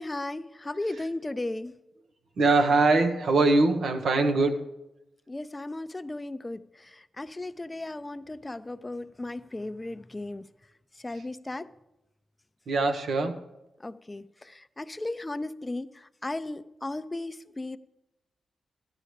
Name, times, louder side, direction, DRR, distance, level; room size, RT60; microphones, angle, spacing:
voice 1, 0.0-1.7 5.3-10.5 11.0-11.7 13.8-17.8, left 2 dB, 20° left, 13 dB, 0.4 m, -36 dB
voice 2, 2.4-4.7 12.7-13.4, right 3 dB, 75° right, 6 dB, 1.1 m, -22 dB
14.0 x 11.0 x 3.3 m, 0.95 s
cardioid pair, 70°, 0 cm